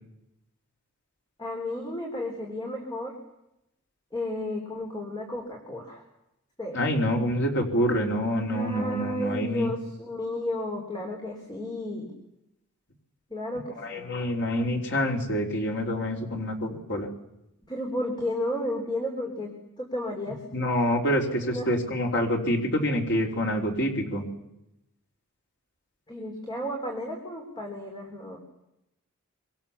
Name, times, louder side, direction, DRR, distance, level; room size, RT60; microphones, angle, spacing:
voice 1, 1.4-3.1 4.1-6.0 6.6-6.8 8.4-12.1 13.3-14.1 17.7-20.4 21.4-21.7 26.1-28.4, left 1 dB, 20° left, 1 dB, 4.0 m, -33 dB
voice 2, 6.7-9.7 13.8-17.1 20.5-24.3, equal, 55° left, 1 dB, 3.6 m, -26 dB
25.5 x 24.5 x 7.1 m, 0.88 s
head